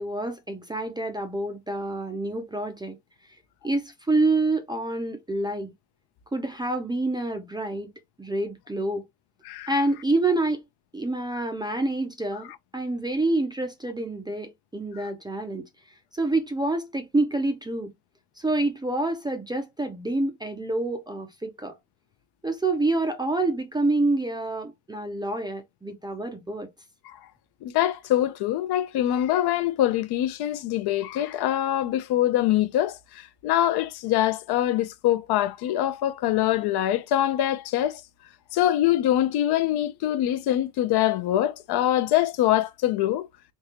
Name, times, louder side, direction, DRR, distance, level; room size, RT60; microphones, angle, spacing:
voice 1, 0.0-3.0 3.6-5.7 6.3-7.9 8.2-9.0 9.7-10.6 10.9-15.6 16.1-17.9 18.4-21.8 22.4-26.7, right 2 dB, 10° right, 0.4 m, -27 dB
voice 2, 27.6-38.0 38.5-43.3, left 13 dB, 60° left, 0.5 m, -24 dB
3.6 x 2.8 x 2.8 m
cardioid pair, 140°, 44 cm